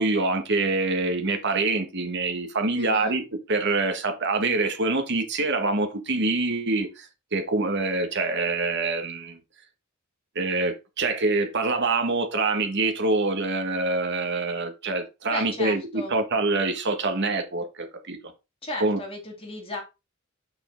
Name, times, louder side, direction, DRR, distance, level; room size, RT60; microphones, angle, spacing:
voice 1, 0.0-3.2 3.5-7.1 7.3-9.4 10.3-18.2 18.8-19.0, right 3 dB, 55° right, 1.4 m, -25 dB
voice 2, 2.7-3.2 15.3-16.1 18.6-19.8, left 1 dB, 30° left, 2.6 m, -35 dB
6.4 x 4.7 x 4.4 m
head